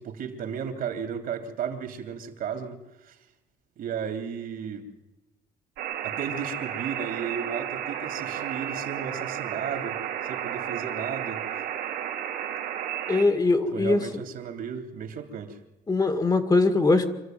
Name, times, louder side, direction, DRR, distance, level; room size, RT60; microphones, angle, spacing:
voice 1, 0.0-3.2 3.8-4.9 6.0-11.4 13.7-15.6, right 7 dB, 60° right, 6 dB, 3.2 m, -34 dB
sound 1, 5.8-13.2, right 10 dB, 85° right, 3.2 m, -32 dB
voice 2, 13.1-14.0 15.9-17.1, left 3 dB, 25° left, 8 dB, 2.1 m, -21 dB
25.5 x 13.5 x 9.3 m, 1.1 s
cardioid pair, 110°, 17 cm